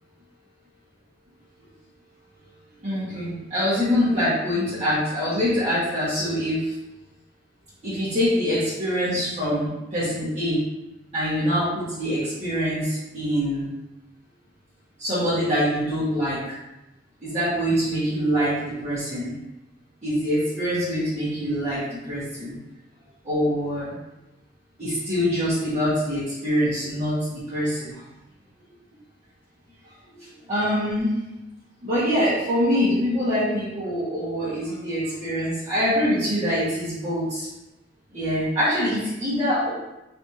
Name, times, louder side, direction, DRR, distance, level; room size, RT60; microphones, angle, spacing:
voice 1, 2.8-6.7 7.8-10.6 11.1-13.7 15.0-16.4 17.2-19.4 20.0-22.5 23.2-23.9 24.8-27.9 30.5-31.1 31.8-37.5 38.1-39.7, equal, 40° right, -13 dB, 1.0 m, -24 dB
3.3 x 2.5 x 2.8 m, 0.97 s
head